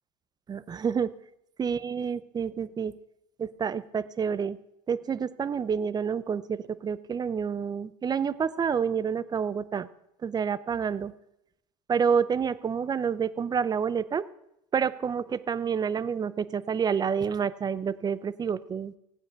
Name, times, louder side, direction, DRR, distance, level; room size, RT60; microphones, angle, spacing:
voice 1, 0.5-1.1 1.6-2.9 3.4-4.6 4.9-9.9 10.2-11.1 11.9-14.2 14.7-18.9, right 6 dB, 25° right, 18 dB, 0.6 m, -28 dB
16.0 x 9.1 x 5.9 m, 0.84 s
supercardioid pair, 100°, 17 cm